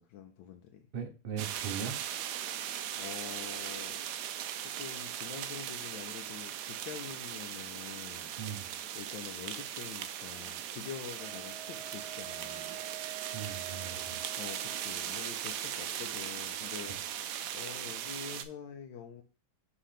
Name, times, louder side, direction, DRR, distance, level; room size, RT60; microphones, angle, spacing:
voice 1, 0.1-0.8 2.4-2.7 3.0-4.0 4.6-8.3 8.9-12.8 14.4-19.2, left 8 dB, 80° left, 4 dB, 1.4 m, -46 dB
voice 2, 0.9-2.0 8.4-8.7 13.3-14.2, right 7 dB, 55° right, 6 dB, 0.6 m, -39 dB
sound 1, 1.4-18.4, right 10 dB, 70° right, 1.0 m, -39 dB
Wind instrument woodwind instrument, 11.2-15.3, right 14 dB, 90° right, 1.4 m, -47 dB
6.3 x 3.0 x 5.7 m, 0.33 s
omnidirectional pair, 2.2 m